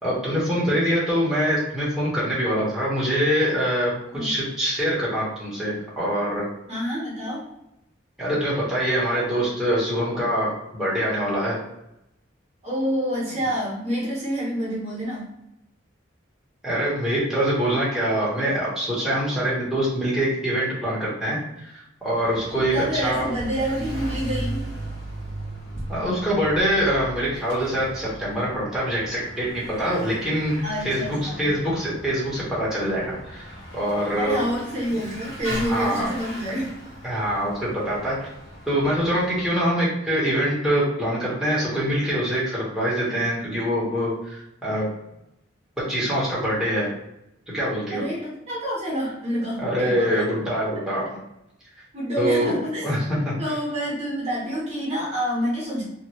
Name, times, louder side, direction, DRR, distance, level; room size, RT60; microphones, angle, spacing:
voice 1, 0.0-6.5 8.2-11.6 16.6-23.3 25.9-30.5 30.8-34.4 35.5-36.1 37.0-38.1 38.7-44.8 45.9-46.9 47.5-48.0 49.6-51.2 52.2-52.5 52.8-53.5, equal, ahead, -8 dB, 1.0 m, -24 dB
voice 2, 6.7-7.4 12.6-15.3 22.7-24.7 30.6-31.5 34.1-36.8 47.9-50.3 50.5-50.6 51.9-52.8 53.4-55.9, equal, 35° right, -5 dB, 1.0 m, -28 dB
Bicycle / Mechanisms, 22.1-39.7, right 1 dB, 65° left, 1.2 m, -37 dB
2.6 x 2.5 x 3.0 m, 0.86 s
head